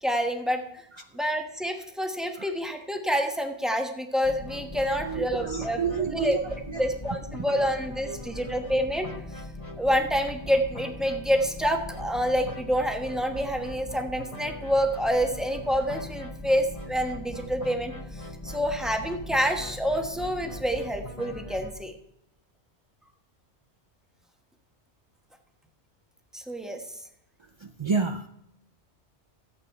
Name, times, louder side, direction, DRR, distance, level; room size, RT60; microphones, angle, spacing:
voice 1, 0.0-0.8 1.1-5.8 6.1-6.4 6.8-9.1 9.8-22.0 26.3-27.0, equal, ahead, 3 dB, 1.2 m, -27 dB
sound 1, 4.2-21.7, left 1 dB, 30° left, 1.3 m, -40 dB
voice 2, 4.9-6.4 6.7-6.8 7.5-7.6 8.1-8.2 27.6-28.3, right 5 dB, 50° right, 7 dB, 0.3 m, -30 dB
14.5 x 8.2 x 4.5 m, 0.79 s
omnidirectional pair, 1.1 m